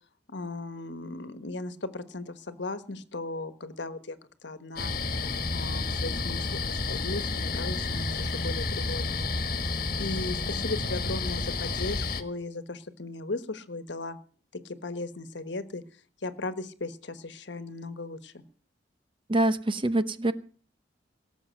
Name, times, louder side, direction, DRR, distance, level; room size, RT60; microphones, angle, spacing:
voice 1, 0.3-4.2 4.4-4.9 5.5-6.6 6.9-9.1 10.0-14.2 14.6-15.8 16.2-18.4, left 2 dB, 70° left, 12 dB, 1.3 m, -36 dB
sound 1, 4.8-12.2, left 3 dB, 50° left, 1.5 m, -30 dB
voice 2, 19.3-20.3, right 2 dB, 30° right, 13 dB, 0.8 m, -25 dB
18.0 x 7.3 x 7.8 m, 0.42 s
head